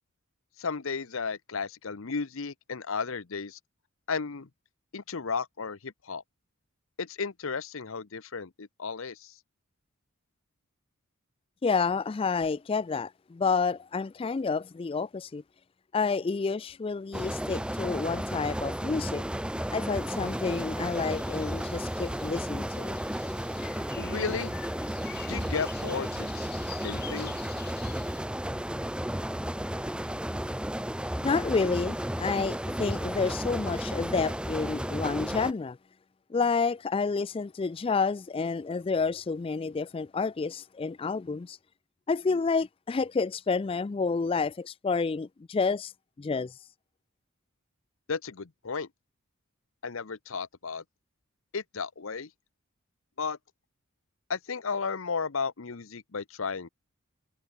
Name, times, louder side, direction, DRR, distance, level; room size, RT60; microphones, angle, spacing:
voice 1, 0.6-3.6 4.1-4.5 4.9-6.2 7.0-9.3 24.0-24.5 25.3-26.4 26.7-27.4 48.1-48.9 49.8-50.8 51.5-52.3 53.2-53.4 54.3-56.7, left 5 dB, 65° left, 0.8 m, -34 dB
voice 2, 11.6-15.4 15.9-19.2 19.7-23.0 31.2-35.8 36.3-41.6 42.1-45.9 46.2-46.6, left 4 dB, 25° left, 0.3 m, -29 dB
sound 1, 17.1-35.5, equal, 5° right, 1.5 m, -33 dB
sound 2, 19.9-28.3, left 9 dB, 45° left, 1.3 m, -48 dB
head